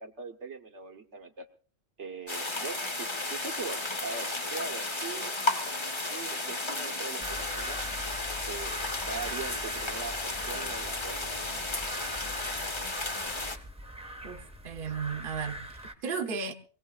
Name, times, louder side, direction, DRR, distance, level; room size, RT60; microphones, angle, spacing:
voice 1, 0.0-1.5 2.0-5.4 6.1-7.8 8.5-11.3, right 4 dB, 70° right, 1.4 m, -41 dB
sound 1, 2.3-13.6, left 2 dB, 25° left, 1.0 m, -34 dB
sound 2, 7.2-15.9, equal, 5° right, 1.2 m, -42 dB
voice 2, 14.2-16.5, right 6 dB, 45° right, 1.2 m, -35 dB
24.5 x 17.5 x 2.4 m
omnidirectional pair, 1.3 m